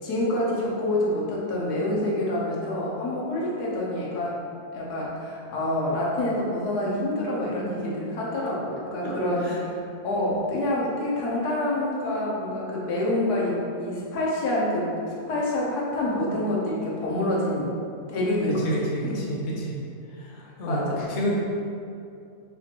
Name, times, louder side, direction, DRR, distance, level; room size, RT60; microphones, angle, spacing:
voice 1, 0.0-4.3 4.7-9.8 10.0-17.7 18.1-19.2 20.7-21.1, left 1 dB, 90° left, -5 dB, 1.4 m, -27 dB
voice 2, 18.5-19.8 20.1-21.4, right 1 dB, 55° left, -4 dB, 0.9 m, -30 dB
5.6 x 2.5 x 2.9 m, 2.5 s
omnidirectional pair, 1.6 m